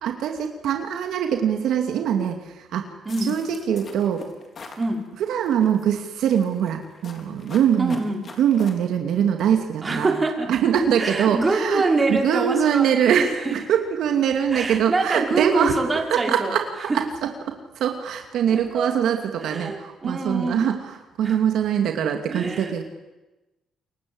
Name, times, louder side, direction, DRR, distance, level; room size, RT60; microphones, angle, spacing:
voice 1, 0.0-2.9 3.3-4.2 5.2-8.0 8.4-10.1 10.5-11.8 12.1-15.8 16.1-22.8, right 8 dB, 80° right, 4 dB, 2.6 m, -23 dB
sound 1, 3.1-4.9 5.4-5.9 6.3-8.7, left 4 dB, 45° left, 4.4 m, -43 dB
voice 2, 4.8-5.1 7.8-8.2 9.8-10.5 11.0-13.6 14.5-16.5 16.9-17.0 18.5-18.9 19.4-20.7 21.2-21.4 22.3-22.8, right 3 dB, 25° right, 2 dB, 5.3 m, -25 dB
28.0 x 23.0 x 8.0 m, 1.1 s
cardioid pair, 90°, 0 cm